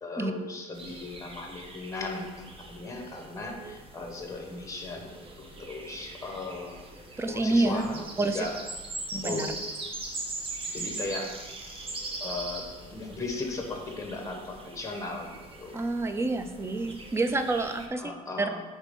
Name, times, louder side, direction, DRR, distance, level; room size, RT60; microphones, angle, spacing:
voice 1, 0.0-6.8 7.3-8.5 9.2-9.5 10.7-11.3 12.2-12.6 12.9-15.8 18.0-18.6, left 3 dB, 20° left, 3 dB, 1.2 m, -37 dB
sound 1, 0.7-17.9, right 2 dB, 35° right, 1.0 m, -41 dB
voice 2, 7.2-7.8 8.2-8.5 9.1-9.5 15.7-18.1 18.4-18.5, right 2 dB, 15° right, 8 dB, 0.5 m, -28 dB
4.8 x 4.2 x 5.2 m, 1.2 s
cardioid pair, 110°, 17 cm